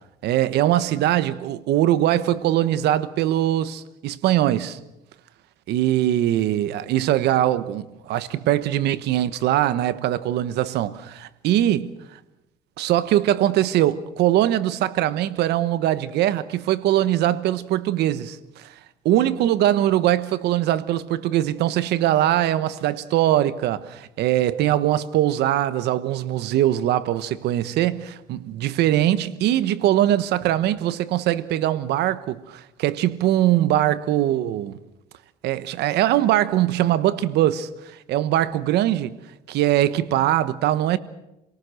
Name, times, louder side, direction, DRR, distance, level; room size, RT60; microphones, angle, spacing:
voice 1, 0.2-4.8 5.7-11.9 12.8-18.7 19.0-34.8 35.4-37.7 38.1-39.2 39.5-41.0, right 13 dB, 80° right, 1.1 m, -21 dB
27.5 x 18.0 x 6.4 m
cardioid pair, 110°, 17 cm